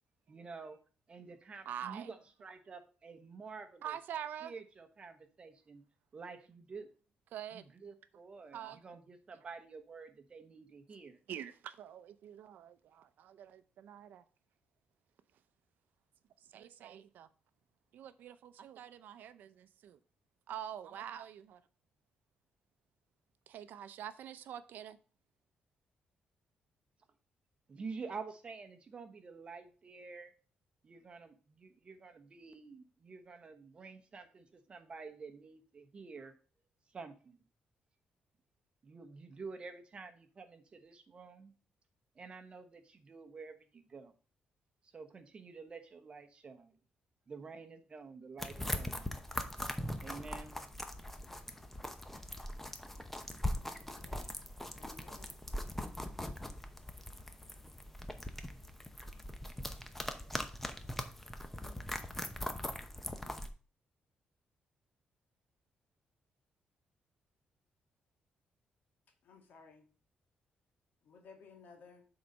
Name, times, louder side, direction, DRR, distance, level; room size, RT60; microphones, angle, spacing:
voice 1, 0.3-0.8 1.1-4.0 4.4-5.8 6.1-6.9 7.5-11.2 27.7-30.3 30.8-36.3 36.9-37.4 38.8-41.5 42.1-44.1 44.9-46.7 47.3-49.1 50.0-50.6, right 4 dB, 35° right, 1.1 m, -49 dB
voice 2, 1.7-2.1 3.8-4.5 7.3-7.6 8.5-8.8 11.3-14.2 16.5-17.3 17.9-20.0 20.5-21.6 23.5-25.0, right 10 dB, 75° right, 0.6 m, -45 dB
sound 1, 48.4-63.5, left 1 dB, 5° left, 0.8 m, -41 dB
voice 3, 53.8-54.4 54.7-55.4 69.2-69.9 71.0-72.1, left 5 dB, 70° left, 1.8 m, -58 dB
7.8 x 4.0 x 5.3 m
cardioid pair, 120°, 3 cm